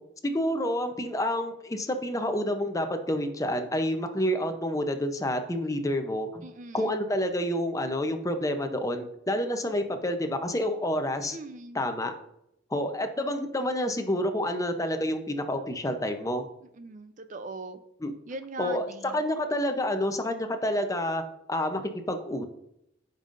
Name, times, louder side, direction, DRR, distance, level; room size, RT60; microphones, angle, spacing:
voice 1, 0.2-6.5 6.7-11.4 11.7-12.1 12.7-16.5 18.0-18.1 18.6-21.2 21.5-22.4, left 1 dB, 15° left, 7 dB, 0.7 m, -29 dB
voice 2, 6.4-6.9 11.2-11.8 16.8-17.8 18.3-19.2, right 2 dB, 40° right, 9 dB, 0.5 m, -40 dB
14.5 x 5.4 x 2.5 m, 0.79 s
head